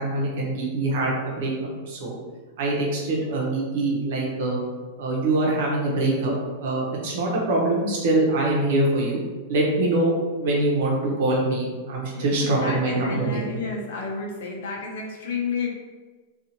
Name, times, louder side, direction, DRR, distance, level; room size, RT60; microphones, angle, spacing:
voice 1, 0.0-1.5 1.9-2.1 2.6-4.6 5.0-6.3 6.6-9.2 9.5-10.1 10.4-13.4, right 2 dB, 65° right, -2 dB, 0.9 m, -24 dB
voice 2, 12.1-15.7, left 4 dB, 70° left, 0 dB, 0.7 m, -31 dB
2.7 x 2.5 x 2.8 m, 1.3 s
supercardioid pair, 150°, 0 cm